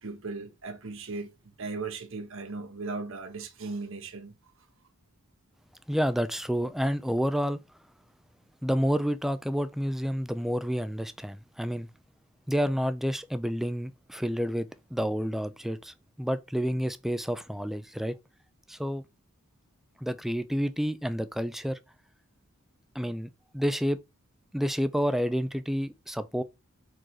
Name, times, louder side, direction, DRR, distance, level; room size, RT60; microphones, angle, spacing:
voice 1, 0.0-4.3, right 3 dB, 60° right, 1.0 m, -37 dB
voice 2, 5.9-7.6 8.6-11.9 12.5-18.2 18.7-19.0 20.0-21.8 22.9-24.0 24.5-26.4, equal, ahead, 0.4 m, -29 dB
4.6 x 4.4 x 4.7 m
head